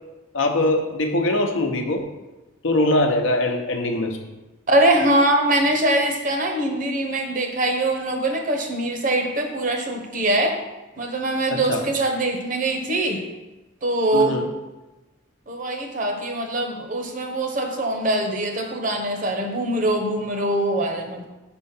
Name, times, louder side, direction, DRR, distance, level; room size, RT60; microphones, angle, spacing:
voice 1, 0.3-2.0 2.6-4.2 11.5-11.8 14.1-14.5, left 1 dB, 70° left, 4 dB, 0.8 m, -22 dB
voice 2, 4.7-10.6 11.0-13.2 13.8-14.4 15.5-21.3, right 1 dB, 40° right, 3 dB, 0.9 m, -23 dB
5.4 x 4.4 x 5.9 m, 1.1 s
head